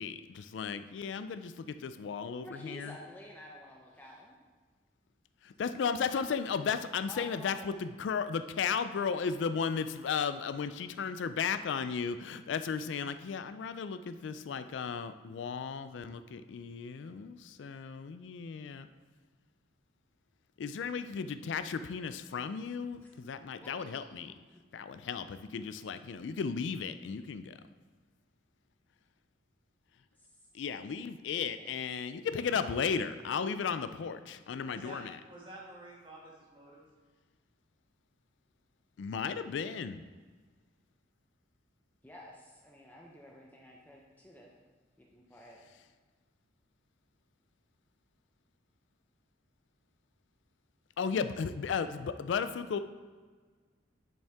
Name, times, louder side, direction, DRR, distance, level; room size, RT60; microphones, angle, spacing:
voice 1, 0.0-3.0 5.4-18.9 20.6-24.3 24.7-27.6 30.5-35.2 39.0-40.0 51.0-52.8, left 6 dB, 75° left, 11 dB, 0.4 m, -35 dB
voice 2, 2.4-4.4 7.1-7.8 23.0-23.1 24.3-24.4 30.2-30.3 42.0-44.5 45.1-45.6, left 1 dB, 10° left, -2 dB, 0.7 m, -50 dB
voice 3, 34.7-36.8, right 1 dB, 25° right, -4 dB, 1.9 m, -50 dB
10.5 x 5.3 x 3.5 m, 1.4 s
head